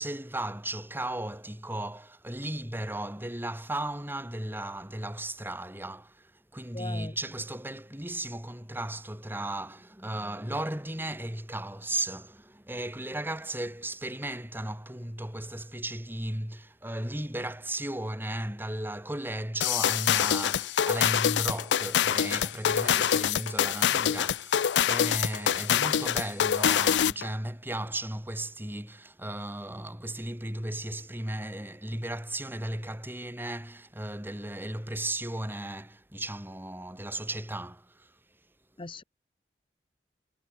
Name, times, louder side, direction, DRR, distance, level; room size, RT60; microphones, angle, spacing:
voice 1, 0.0-38.2, right 1 dB, 10° right, 4.1 m, -35 dB
voice 2, 6.7-7.1 38.8-39.0, left 2 dB, 30° left, 0.9 m, -38 dB
sound 1, 19.6-27.3, left 9 dB, 85° left, 0.4 m, -25 dB
head